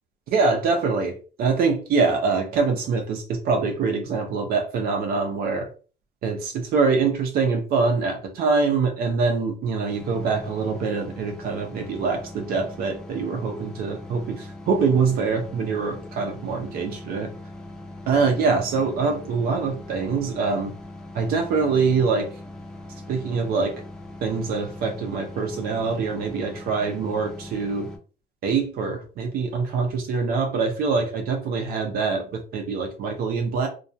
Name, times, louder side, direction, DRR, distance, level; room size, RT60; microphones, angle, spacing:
voice 1, 0.3-5.7 6.2-17.3 18.1-20.8 21.1-22.3 23.1-23.8 24.2-27.9 28.4-33.7, right 4 dB, 65° right, 3 dB, 0.5 m, -24 dB
sound 1, 9.9-28.0, left 1 dB, 5° left, 0.6 m, -40 dB
2.3 x 2.1 x 2.6 m, 0.37 s
cardioid pair, 110°, 17 cm